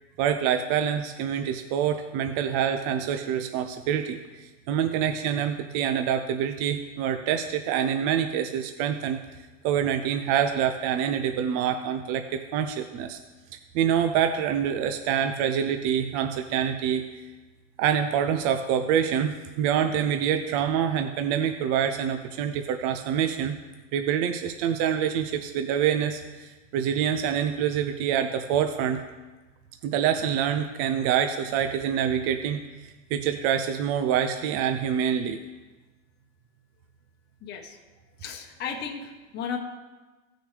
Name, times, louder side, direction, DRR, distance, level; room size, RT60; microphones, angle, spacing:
voice 1, 0.2-9.2 9.6-13.2 13.7-17.1 17.8-23.6 23.9-29.0 29.8-35.4, right 8 dB, 40° right, 7 dB, 0.5 m, -26 dB
voice 2, 37.4-37.8 38.2-39.6, left 6 dB, 25° left, 1 dB, 1.0 m, -34 dB
16.5 x 6.4 x 3.3 m, 1.2 s
supercardioid pair, 145°, 40 cm